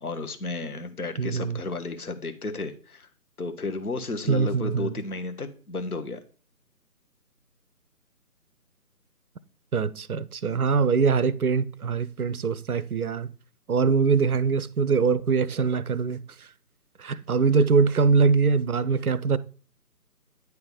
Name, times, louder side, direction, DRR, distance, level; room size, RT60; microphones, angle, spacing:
voice 1, 0.0-3.1 3.4-6.2, left 3 dB, 60° left, 1.1 m, -33 dB
voice 2, 1.2-1.6 4.3-4.9 9.7-13.3 13.7-16.2 17.0-19.4, right 5 dB, 65° right, 0.6 m, -23 dB
9.5 x 3.5 x 5.4 m
figure-of-eight pair, 150°, 49 cm